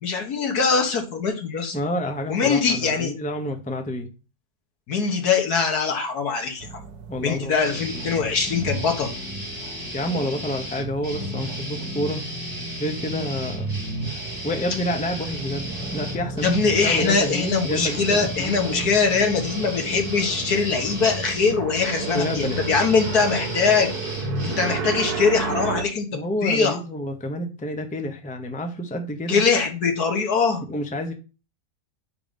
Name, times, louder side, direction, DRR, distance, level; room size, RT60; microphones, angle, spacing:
voice 1, 0.0-1.8 2.3-3.1 4.9-6.7 7.2-9.1 16.4-23.9 24.4-26.8 29.3-30.6, left 5 dB, 75° left, 3 dB, 1.9 m, -22 dB
voice 2, 1.7-4.1 7.1-8.1 9.9-12.2 12.8-13.7 14.4-18.6 22.1-22.7 26.1-29.4 30.7-31.1, equal, 10° left, 5 dB, 0.5 m, -29 dB
sound 1, 6.6-25.8, right 3 dB, 75° right, 1.4 m, -34 dB
sound 2, 7.6-24.8, right 1 dB, 10° right, 3.7 m, -34 dB
5.2 x 4.8 x 5.1 m, 0.33 s
omnidirectional pair, 1.7 m